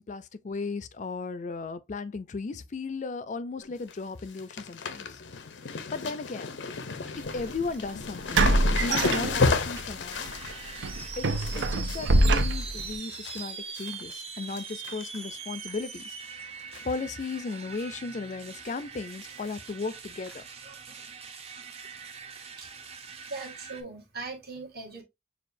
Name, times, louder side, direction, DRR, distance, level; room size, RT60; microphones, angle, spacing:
voice 1, 0.0-5.2 5.7-6.5 7.2-10.3 11.2-16.2 16.8-20.4, left 4 dB, 40° left, 0.4 m, -36 dB
sound 1, 3.6-3.9 4.2-13.4 13.8-14.2 14.5-15.3 15.7-15.8 16.7-17.0 17.3-17.4 17.7-17.8 19.4-19.5 20.3-20.4, left 4 dB, 85° left, 0.6 m, -33 dB
sound 2, 7.2-7.4 8.3-9.8 10.2-10.4 10.8-12.9, right 2 dB, 90° right, 0.5 m, -24 dB
sound 3, 10.1-23.8, right 6 dB, 35° right, 0.6 m, -42 dB
voice 2, 23.3-25.0, right 3 dB, 60° right, 1.4 m, -39 dB
6.5 x 2.4 x 2.5 m
head